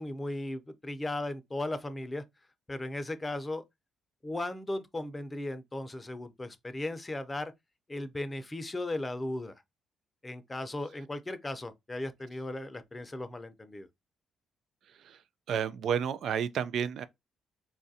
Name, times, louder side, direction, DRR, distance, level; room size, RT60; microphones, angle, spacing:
voice 1, 0.0-2.2 2.7-3.6 4.2-7.5 7.9-9.5 10.2-13.9, left 1 dB, 20° left, 0.6 m, -36 dB
voice 2, 15.5-17.0, right 8 dB, 70° right, 0.4 m, -31 dB
4.1 x 2.4 x 2.7 m
cardioid pair, 90°, 0 cm